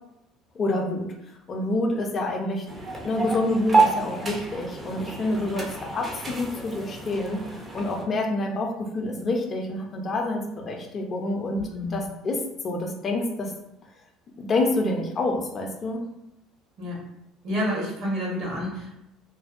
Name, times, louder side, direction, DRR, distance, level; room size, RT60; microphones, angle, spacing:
voice 1, 0.5-1.1 1.5-2.7 3.0-7.4 7.7-11.6 11.9-12.4 12.6-13.5 14.4-16.0, left 2 dB, 40° left, 1 dB, 0.4 m, -27 dB
sound 1, 2.7-8.0, right 3 dB, 25° right, 0.5 m, -28 dB
voice 2, 11.5-12.1 16.8-17.0 17.4-18.9, equal, 65° right, -4 dB, 1.1 m, -29 dB
2.5 x 2.1 x 2.4 m, 0.83 s
supercardioid pair, 105°, 0 cm